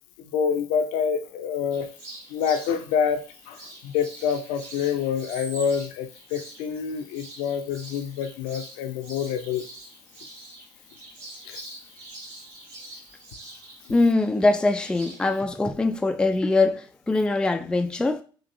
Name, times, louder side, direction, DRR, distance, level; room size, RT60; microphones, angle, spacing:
voice 1, 0.2-1.9 2.3-3.2 3.5-9.7 11.5-11.6, left 7 dB, 65° left, 0.5 m, -27 dB
sound 1, 1.7-15.4, right 2 dB, 65° right, 1.3 m, -45 dB
voice 2, 13.9-18.2, left 2 dB, 5° left, 0.4 m, -22 dB
4.3 x 2.6 x 2.6 m
figure-of-eight pair, 55°, 13 cm